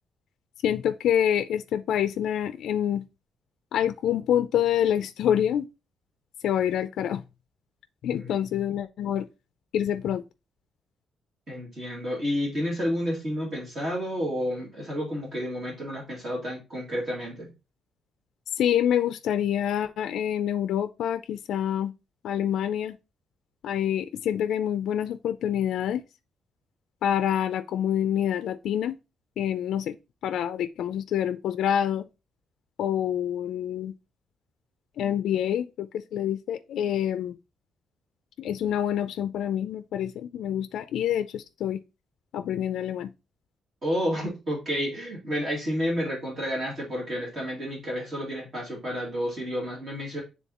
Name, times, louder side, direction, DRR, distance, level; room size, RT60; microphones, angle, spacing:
voice 1, 0.6-3.0 3.7-5.7 6.4-7.2 8.0-9.2 9.7-10.2 18.6-21.9 22.2-23.0 23.6-26.0 27.0-29.0 29.4-30.0 30.2-32.1 32.8-33.9 35.0-37.3 38.4-41.8 42.3-43.1, left 10 dB, 75° left, 0.4 m, -26 dB
voice 2, 11.5-17.5 43.8-50.2, equal, 35° right, 2.5 m, -30 dB
9.2 x 3.5 x 2.9 m
cardioid pair, 160°, 0 cm